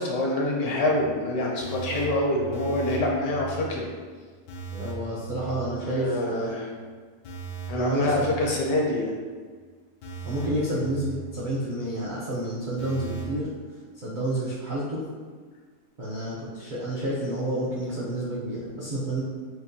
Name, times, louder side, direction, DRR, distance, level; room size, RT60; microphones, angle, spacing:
voice 1, 0.0-3.8 5.8-6.7 7.7-9.1, left 1 dB, 70° left, -1 dB, 1.1 m, -26 dB
sound 1, 0.8-6.4 6.7-6.8 7.2-9.2 9.5-9.6 10.0-11.9 12.2-12.3 12.8-13.4, right 4 dB, 90° left, 1.4 m, -39 dB
voice 2, 4.7-6.5 7.7-8.3 10.2-13.5 14.0-15.0 16.0-19.2, right 1 dB, 60° right, -8 dB, 0.5 m, -29 dB
5.8 x 2.2 x 2.7 m, 1.5 s
omnidirectional pair, 1.8 m